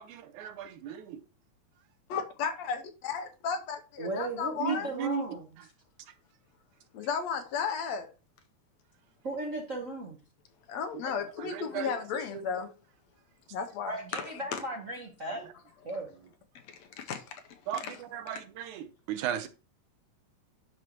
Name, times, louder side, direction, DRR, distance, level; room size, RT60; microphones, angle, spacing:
voice 1, 0.0-1.2 4.6-5.3 11.0-11.9 12.3-12.4 15.3-15.5 17.7-19.5, right 9 dB, 85° right, 2.3 m, -36 dB
voice 2, 2.1-4.9 6.9-8.1 10.7-12.7 13.5-14.6 16.7-17.4 17.7-18.0, left 6 dB, 75° left, 2.0 m, -34 dB
voice 3, 4.0-5.5 9.2-10.2 13.8-15.5 15.8-16.1, right 1 dB, 50° right, 0.9 m, -36 dB
10.5 x 6.3 x 3.0 m
omnidirectional pair, 3.3 m